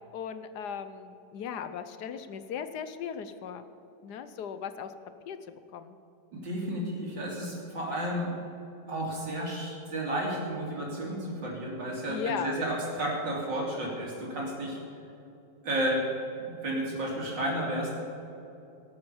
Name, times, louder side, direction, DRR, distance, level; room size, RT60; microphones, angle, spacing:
voice 1, 0.1-3.6 4.0-4.9 5.3-6.0 12.1-12.6, left 7 dB, 65° left, 11 dB, 1.2 m, -37 dB
voice 2, 6.3-8.3 8.9-14.8 15.6-16.0 16.4-17.9, right 1 dB, 70° right, -3 dB, 3.9 m, -32 dB
17.5 x 7.8 x 7.1 m, 2.9 s
omnidirectional pair, 2.0 m